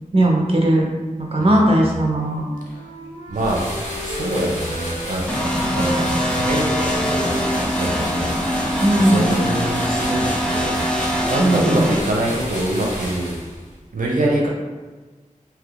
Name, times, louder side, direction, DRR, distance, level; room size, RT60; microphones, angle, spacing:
voice 1, 0.1-0.9 1.2-2.4 8.8-9.3 11.4-11.9, right 1 dB, 45° right, -2 dB, 0.7 m, -17 dB
voice 2, 1.4-1.9 2.7-2.9 3.3-3.6 4.0-5.2 5.7-8.5 9.0-13.4 13.9-14.5, right 1 dB, 90° right, -3 dB, 0.5 m, -25 dB
Wind instrument woodwind instrument, 1.9-5.3 5.6-9.5, equal, 50° left, 0.8 m, -34 dB
sound 1, 3.3-13.7, equal, 65° left, 1.3 m, -32 dB
sound 2, 5.3-12.0, equal, 5° left, 0.5 m, -23 dB
3.4 x 2.8 x 2.4 m, 1.3 s
wide cardioid pair, 45°, 14 cm